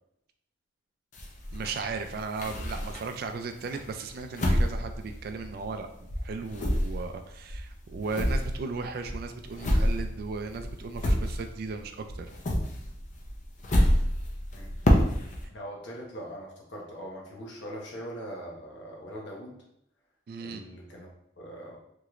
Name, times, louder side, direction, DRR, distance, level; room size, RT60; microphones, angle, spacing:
sound 1, 1.1-3.3 3.7-5.8 6.1-11.8 12.1-15.4, equal, 40° left, 0.5 m, -28 dB
voice 1, 1.5-12.3 20.3-20.6, right 4 dB, 55° right, 7 dB, 0.3 m, -36 dB
voice 2, 14.5-19.6 20.4-21.8, equal, 70° left, -2 dB, 0.8 m, -42 dB
3.0 x 3.0 x 2.4 m, 0.77 s
head